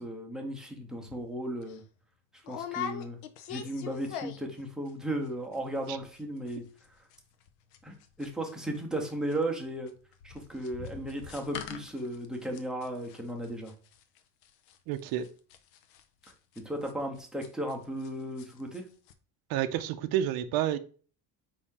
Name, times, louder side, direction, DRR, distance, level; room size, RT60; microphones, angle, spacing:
voice 1, 0.0-1.8 2.5-3.2 3.5-6.6 7.8-9.9 10.2-13.7 16.6-18.8, right 1 dB, ahead, 0.7 m, -35 dB
sound 1, 1.1-1.2 1.6-1.8 2.4-4.6 4.9-5.3 5.5-5.6 5.8-6.2 6.5-18.1 18.4-18.8 19.1-19.2, left 8 dB, 75° left, 0.6 m, -43 dB
voice 2, 14.9-15.3 19.5-20.8, right 11 dB, 60° right, 0.5 m, -29 dB
4.0 x 2.8 x 3.6 m
cardioid pair, 125°, 42 cm